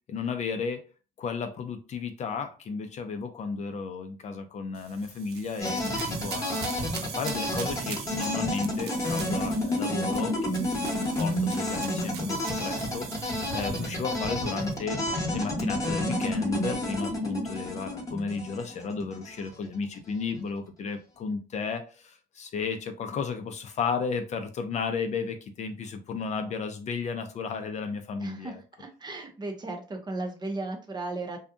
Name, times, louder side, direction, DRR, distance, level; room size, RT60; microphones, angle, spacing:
voice 1, 0.1-0.8 1.2-6.7 7.0-15.0 15.3-28.6, left 5 dB, 45° left, 7 dB, 0.4 m, -33 dB
sound 1, 4.7-14.7, right 8 dB, 70° right, 0.5 m, -42 dB
sound 2, 5.6-19.5, left 1 dB, 20° left, 1.0 m, -30 dB
voice 2, 28.2-31.4, right 2 dB, 25° right, 4 dB, 0.7 m, -36 dB
2.7 x 2.3 x 2.5 m, 0.34 s
cardioid pair, 110°, 17 cm